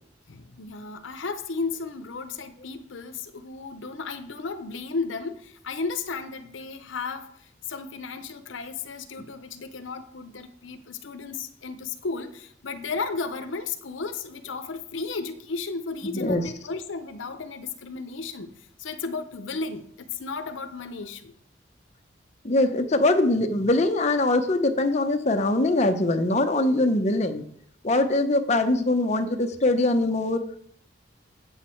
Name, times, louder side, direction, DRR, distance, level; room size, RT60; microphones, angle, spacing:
voice 1, 0.3-21.4, left 4 dB, 75° left, 0.7 m, -34 dB
voice 2, 16.1-16.4 22.4-27.4 27.8-30.4, left 2 dB, 35° left, 0.7 m, -22 dB
8.1 x 7.2 x 4.4 m
head